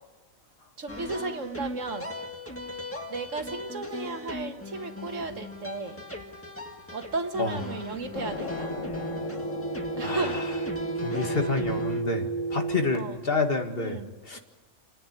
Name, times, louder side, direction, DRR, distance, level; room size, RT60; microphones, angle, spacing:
voice 1, 0.8-2.1 3.1-6.0 6.9-8.8 10.0-10.4 10.8-10.9 12.9-13.2 13.8-14.4, right 3 dB, 85° right, 6 dB, 2.0 m, -34 dB
sound 1, 0.9-12.0, left 1 dB, 10° left, 1.9 m, -38 dB
sound 2, 8.1-13.0, right 2 dB, 90° left, 1.5 m, -32 dB
voice 2, 10.0-10.4 11.0-14.0 14.3-14.4, left 3 dB, 50° left, 5 dB, 2.0 m, -28 dB
29.5 x 10.0 x 9.9 m, 1.3 s
omnidirectional pair, 1.3 m